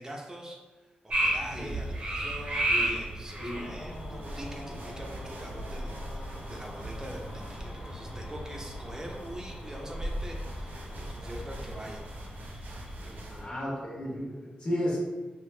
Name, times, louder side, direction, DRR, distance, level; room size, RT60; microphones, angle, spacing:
voice 1, 0.0-12.0 13.0-13.6, right 1 dB, 20° right, 0 dB, 0.6 m, -44 dB
sound 1, 1.1-13.5, right 1 dB, 45° right, 0.8 m, -35 dB
sound 2, 3.5-12.3, left 1 dB, 80° left, 0.8 m, -47 dB
sound 3, 3.9-13.5, right 2 dB, 85° right, 0.5 m, -52 dB
voice 2, 13.3-15.0, left 1 dB, 35° left, -5 dB, 1.2 m, -33 dB
4.6 x 2.2 x 2.2 m, 1.3 s
cardioid pair, 90°, 3 cm